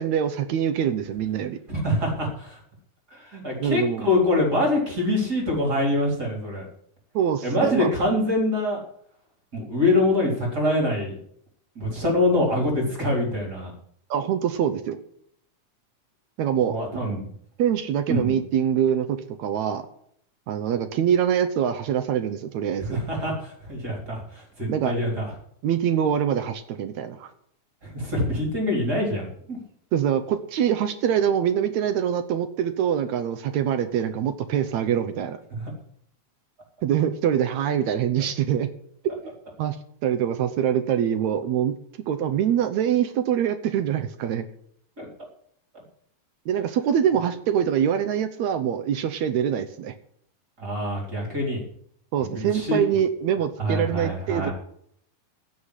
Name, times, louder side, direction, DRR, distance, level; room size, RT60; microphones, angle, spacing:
voice 1, 0.0-1.6 3.6-4.1 7.2-7.9 14.1-15.0 16.4-16.8 17.6-19.9 20.5-23.0 24.7-24.9 25.6-27.3 29.9-35.4 36.8-38.7 39.6-39.8 40.0-41.7 42.1-44.5 46.5-49.9 52.1-54.5, right 9 dB, 75° right, 10 dB, 2.1 m, -24 dB
voice 2, 1.7-2.6 3.1-6.7 7.4-8.8 9.5-11.2 11.8-13.7 16.7-17.3 18.1-18.4 22.8-25.3 27.8-29.6 35.5-35.7 45.0-45.1 50.6-51.6 52.2-52.8 53.6-54.5, left 1 dB, 30° right, -1 dB, 4.1 m, -25 dB
16.0 x 5.8 x 9.8 m, 0.68 s
omnidirectional pair, 3.4 m